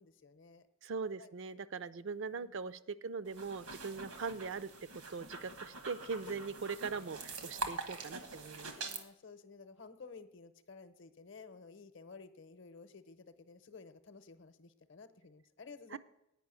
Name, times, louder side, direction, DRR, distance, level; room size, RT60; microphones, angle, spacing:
voice 1, 0.0-0.6 1.2-1.3 2.3-2.6 7.5-7.9 8.7-16.0, left 4 dB, 55° left, 11 dB, 0.7 m, -54 dB
voice 2, 0.8-4.7 5.1-8.7 15.9-16.0, right 5 dB, 55° right, 15 dB, 0.4 m, -41 dB
sound 1, 3.3-9.0, right 3 dB, 85° right, 1.4 m, -44 dB
9.2 x 5.5 x 8.1 m, 0.85 s
head